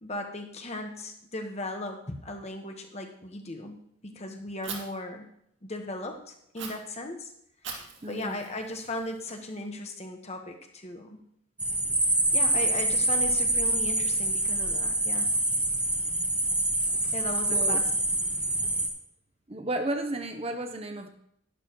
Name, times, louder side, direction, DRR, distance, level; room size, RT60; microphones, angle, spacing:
voice 1, 0.0-3.8 4.0-5.3 5.6-7.3 7.7-11.2 12.3-15.3 17.1-17.9, left 1 dB, 30° left, 4 dB, 1.3 m, -37 dB
Fire, 4.6-4.8 6.6-6.7 7.6-9.6, right 6 dB, 60° right, 2.3 m, -42 dB
voice 2, 8.0-8.4 17.5-17.8 19.5-21.1, right 1 dB, 30° right, 6 dB, 0.7 m, -33 dB
sound 1, 11.6-18.9, right 1 dB, 5° right, 1.3 m, -26 dB
11.5 x 11.0 x 3.1 m, 0.71 s
head